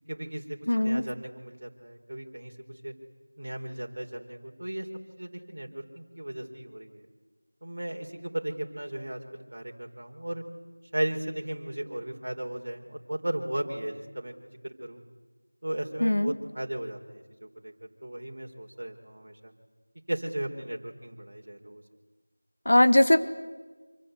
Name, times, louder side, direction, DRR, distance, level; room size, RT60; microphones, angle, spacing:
voice 1, 0.1-2.9 3.4-4.9 5.2-7.1 7.6-10.4 10.9-15.0 15.6-17.7 18.0-19.5 20.1-21.8, right 1 dB, 45° right, 2 dB, 4.2 m, -36 dB
voice 2, 0.7-1.0 16.0-16.3 22.7-23.2, left 1 dB, 50° left, 10 dB, 1.8 m, -20 dB
27.0 x 25.5 x 8.1 m, 1.2 s
figure-of-eight pair, 175°, 0 cm